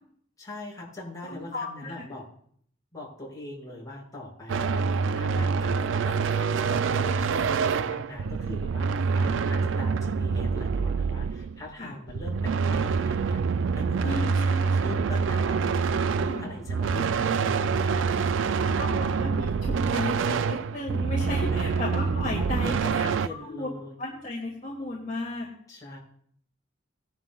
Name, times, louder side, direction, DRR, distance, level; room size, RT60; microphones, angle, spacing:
voice 1, 0.4-2.3 2.9-4.8 5.1-14.2 14.8-15.8 16.2-19.3 21.5-21.9 22.4-24.0 25.7-26.0, left 1 dB, 20° left, -5 dB, 5.5 m, -42 dB
voice 2, 1.3-2.0 11.8-11.9 14.0-15.0 16.2-16.5 18.6-23.1 23.4-23.7 24.0-25.5, left 2 dB, 40° left, -4 dB, 2.3 m, -34 dB
sound 1, 4.5-11.7 12.1-23.3, right 5 dB, 70° right, 0.4 m, -26 dB
19.0 x 11.0 x 2.4 m, 0.62 s
head